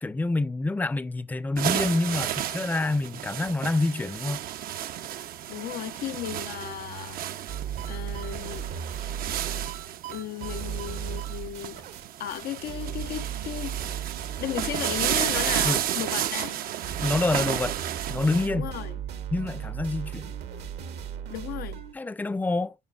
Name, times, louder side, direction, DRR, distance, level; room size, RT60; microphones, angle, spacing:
voice 1, 0.0-4.4 15.6-15.8 17.0-17.8 18.1-18.7 19.3-20.3 21.9-22.7, left 2 dB, 10° left, 0.5 m, -27 dB
sound 1, 1.6-18.5, right 11 dB, 60° right, 0.5 m, -32 dB
voice 2, 5.5-7.2 7.9-8.7 10.1-11.8 12.2-13.9 14.4-16.6 18.5-19.0 21.3-21.8, left 12 dB, 65° left, 0.5 m, -35 dB
sound 2, 7.5-12.0 12.3-12.4 12.7-21.9, right 9 dB, 80° right, 1.2 m, -36 dB
9.7 x 4.9 x 2.3 m
supercardioid pair, 75°, 17 cm